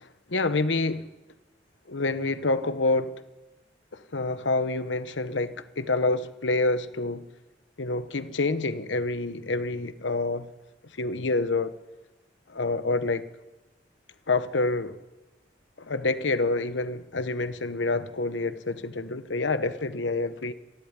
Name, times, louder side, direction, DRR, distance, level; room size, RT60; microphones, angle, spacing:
voice 1, 0.3-1.1 1.9-3.1 4.1-7.2 7.8-10.5 11.0-11.7 12.5-13.3 14.3-15.0 15.9-20.5, left 3 dB, 85° left, 1.1 m, -27 dB
26.5 x 12.0 x 9.8 m
head